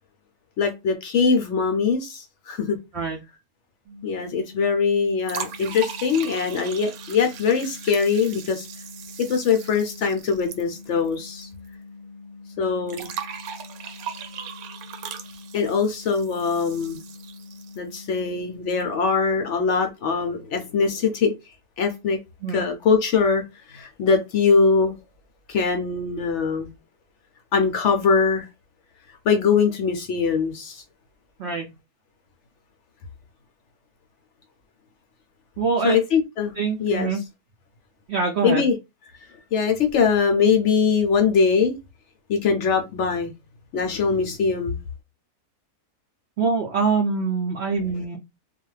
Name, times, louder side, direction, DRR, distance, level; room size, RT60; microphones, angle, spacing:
voice 1, 0.6-2.8 4.0-8.7 9.2-11.5 12.6-13.1 15.5-17.0 17.8-21.3 21.8-22.2 22.5-23.4 23.7-24.9 25.5-26.7 27.5-28.5 29.3-30.8 35.8-37.1 38.4-38.8 39.5-41.8 42.3-43.3 43.7-44.8, left 5 dB, 70° left, 0.7 m, -22 dB
sound 1, 3.8-19.1, left 3 dB, 15° right, 0.7 m, -44 dB
sound 2, 5.2-11.4 11.7-11.8 12.9-17.9, right 8 dB, 70° right, 1.0 m, -38 dB
voice 2, 35.6-36.0 36.6-37.2 38.1-38.7 46.4-48.2, right 4 dB, 85° right, 0.5 m, -24 dB
2.4 x 2.3 x 3.1 m
omnidirectional pair, 1.7 m